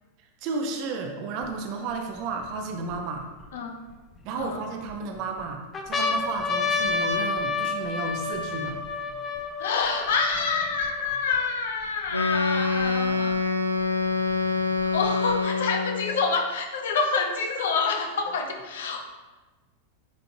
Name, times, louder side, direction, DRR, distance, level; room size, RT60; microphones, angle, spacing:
voice 1, 0.4-3.3 4.2-8.8, right 4 dB, 45° right, 3 dB, 0.8 m, -32 dB
sound 1, 1.4-1.5 2.2-3.5 4.2-4.9 5.4-5.5 5.7-11.4 12.1-12.2 12.3-13.4 14.3-15.3, left 4 dB, 20° left, 0.7 m, -30 dB
voice 2, 9.6-13.4 14.8-19.0, left 5 dB, 60° left, 2 dB, 0.9 m, -27 dB
Wind instrument woodwind instrument, 12.1-16.2, left 3 dB, 85° left, 0.4 m, -26 dB
9.4 x 4.0 x 2.8 m, 1.2 s
figure-of-eight pair, 90°, 0 cm